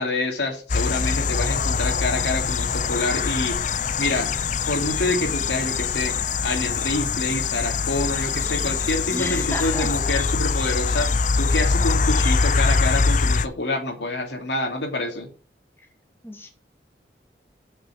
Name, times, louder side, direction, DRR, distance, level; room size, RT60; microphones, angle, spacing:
voice 1, 0.0-4.3 4.7-6.1 6.4-15.3, left 2 dB, 85° left, 3 dB, 3.0 m, -27 dB
sound 1, 0.7-13.5, left 4 dB, 45° left, 0.6 m, -23 dB
voice 2, 9.1-9.9 16.2-16.5, left 1 dB, 15° left, 2 dB, 1.9 m, -31 dB
8.2 x 6.7 x 7.4 m, 0.38 s
head